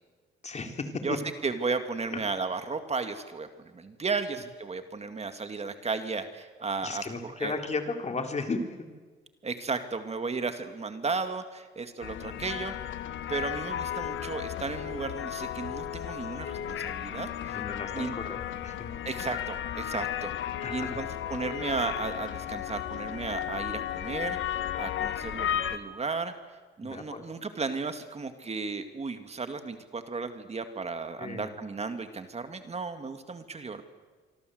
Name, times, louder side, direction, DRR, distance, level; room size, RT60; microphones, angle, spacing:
voice 1, 0.4-1.2 2.1-2.2 6.8-8.6 17.5-18.9 20.6-21.0 26.8-27.2 31.2-31.5, left 3 dB, 35° left, 5 dB, 3.6 m, -35 dB
voice 2, 1.0-7.5 9.4-12.8 13.3-17.6 17.9-18.2 19.1-20.3 20.7-26.3 26.8-33.8, right 4 dB, 30° right, 8 dB, 2.2 m, -34 dB
sound 1, 12.0-25.8, left 10 dB, 75° left, 1.4 m, -34 dB
25.5 x 25.5 x 8.0 m, 1.4 s
cardioid pair, 90°, 20 cm